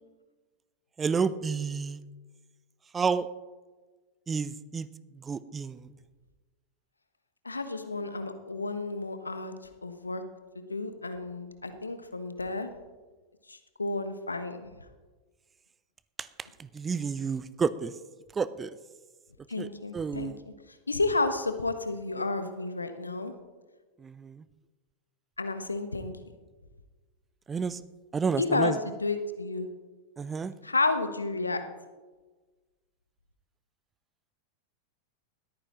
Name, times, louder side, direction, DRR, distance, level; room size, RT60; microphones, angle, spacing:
voice 1, 1.0-2.0 2.9-3.3 4.3-4.9 5.1-5.9 16.2-16.3 16.6-17.9 18.3-18.8 19.6-19.7 19.9-20.4 24.0-24.4 27.5-27.8 28.1-28.8 30.2-30.5, right 5 dB, 20° right, 17 dB, 0.5 m, -30 dB
voice 2, 7.4-9.5 9.8-10.2 10.5-12.7 13.5-14.7 19.5-20.3 20.9-23.3 25.4-26.1 28.4-29.7 30.6-31.6, left 3 dB, 80° left, 9 dB, 1.1 m, -31 dB
20.5 x 14.0 x 3.0 m, 1.3 s
figure-of-eight pair, 90°, 0 cm